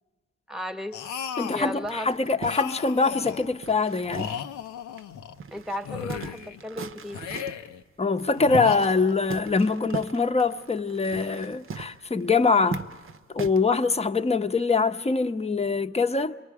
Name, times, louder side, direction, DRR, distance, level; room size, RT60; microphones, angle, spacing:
voice 1, 0.5-1.0 1.5-2.1 2.4-2.5 5.5-7.2, left 1 dB, ahead, 1.2 m, -35 dB
sound 1, 0.9-1.7 2.4-3.5 4.0-5.4 5.8-6.6 7.1-7.8 8.4-9.4, left 8 dB, 90° left, 0.8 m, -35 dB
voice 2, 1.4-4.4 8.0-12.8 13.3-16.3, left 4 dB, 20° left, 0.8 m, -24 dB
sound 2, 1.8-4.7 5.0-5.1 5.4-7.7 8.2-9.0 9.3-13.7, right 5 dB, 45° right, 0.8 m, -39 dB
28.5 x 23.5 x 4.8 m
supercardioid pair, 55°, 29 cm